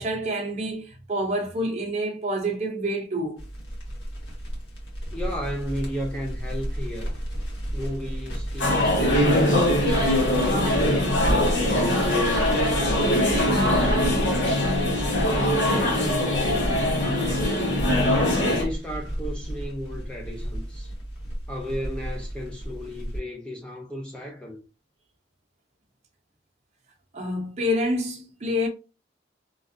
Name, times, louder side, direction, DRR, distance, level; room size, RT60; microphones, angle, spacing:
voice 1, 0.0-3.4 27.1-28.7, equal, 35° right, 0.6 m, -27 dB
Crackle, 3.4-23.2, equal, 85° left, 1.5 m, -32 dB
voice 2, 5.1-7.1 7.7-9.5 9.8-11.2 11.7-14.3 15.2-17.7 18.3-20.9 21.5-24.6, equal, 5° left, 0.5 m, -34 dB
sound 1, 8.6-18.6, left 1 dB, 70° left, 1.0 m, -22 dB
3.1 x 2.5 x 2.5 m
head